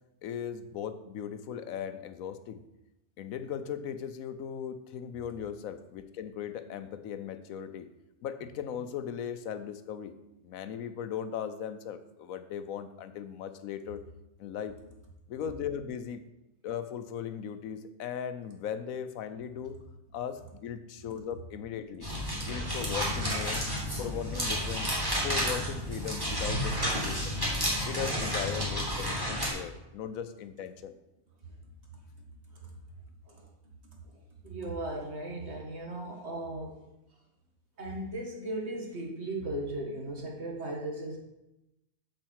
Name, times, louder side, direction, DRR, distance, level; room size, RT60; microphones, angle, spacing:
voice 1, 0.2-2.6 3.2-7.9 8.2-10.1 10.4-14.0 14.4-14.7 15.3-16.2 16.6-19.8 20.1-22.1 22.5-23.6 24.0-25.0 25.2-27.4 27.9-30.9, left 8 dB, 85° left, 11 dB, 1.1 m, -38 dB
sound 1, 22.0-29.5, equal, 15° right, 2.4 m, -31 dB
voice 2, 34.4-36.8 37.8-41.2, right 1 dB, 55° right, 0 dB, 2.0 m, -37 dB
7.6 x 7.1 x 4.7 m, 0.92 s
omnidirectional pair, 1.4 m